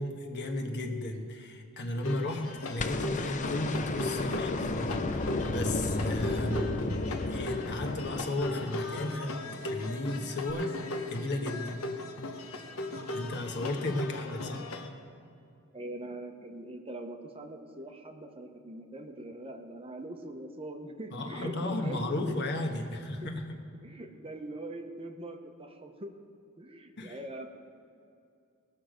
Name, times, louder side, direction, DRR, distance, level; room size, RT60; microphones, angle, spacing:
voice 1, 0.0-6.6 7.3-9.3 9.6-10.7 11.1-11.7 13.1-14.6 21.1-23.6 27.0-27.2, left 1 dB, 55° left, 3 dB, 1.3 m, -34 dB
sound 1, 2.0-14.9, left 2 dB, 75° left, 1.1 m, -38 dB
sound 2, 2.8-9.0 10.5-10.6, left 2 dB, 35° left, 0.6 m, -33 dB
voice 2, 6.2-6.7 15.7-23.3 23.8-26.2 26.6-27.5, right 1 dB, 25° right, 5 dB, 0.8 m, -43 dB
19.5 x 6.5 x 5.1 m, 2.5 s
head